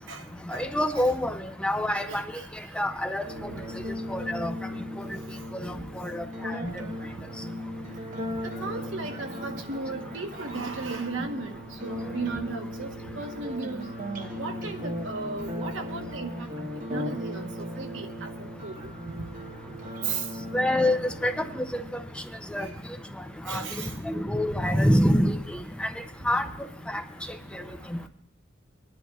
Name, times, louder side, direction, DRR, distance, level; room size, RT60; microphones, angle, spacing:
voice 1, 0.5-1.3 1.6-2.2 2.8-3.2 4.1-4.5 5.5-5.6 6.0-6.6 20.5-21.8 22.5-22.7 23.5-23.6 24.1-25.4 25.8-25.9 26.3-26.5 26.9-27.0, left 1 dB, 5° left, 7 dB, 0.5 m, -25 dB
voice 2, 2.1-2.5 8.4-11.6 11.8-13.9 14.4-16.3 16.9-17.5 17.8-18.9 20.0-20.2 22.6-22.7 23.5-23.9, right 4 dB, 80° right, 4 dB, 1.1 m, -35 dB
sound 1, 3.2-22.2, equal, 45° right, 1.0 m, -37 dB
25.5 x 10.5 x 2.3 m, 0.68 s
head